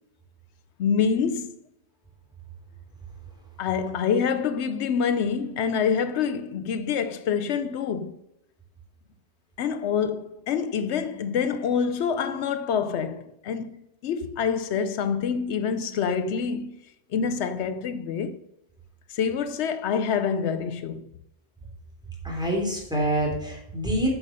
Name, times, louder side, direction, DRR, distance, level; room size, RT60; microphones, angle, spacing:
voice 1, 0.8-1.5 3.6-8.2 9.6-13.8 14.0-16.8 17.1-18.4 19.1-21.1, left 6 dB, 85° left, 0.9 m, -26 dB
voice 2, 22.2-24.1, right 1 dB, 5° right, 3.2 m, -26 dB
8.9 x 5.9 x 6.6 m
omnidirectional pair, 1.1 m